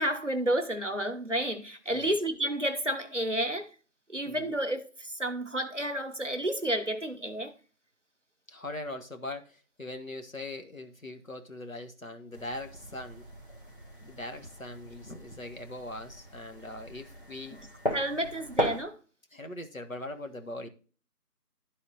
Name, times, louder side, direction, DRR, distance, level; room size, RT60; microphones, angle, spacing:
voice 1, 0.0-3.7 4.1-7.5 17.9-19.0, right 1 dB, 45° right, 0.9 m, -31 dB
voice 2, 8.5-13.3 14.0-17.6 18.1-18.3 19.3-20.7, left 1 dB, 55° left, 1.4 m, -41 dB
sound 1, 12.3-18.8, equal, 30° left, 1.8 m, -38 dB
11.5 x 4.1 x 4.0 m
figure-of-eight pair, 180°, 49 cm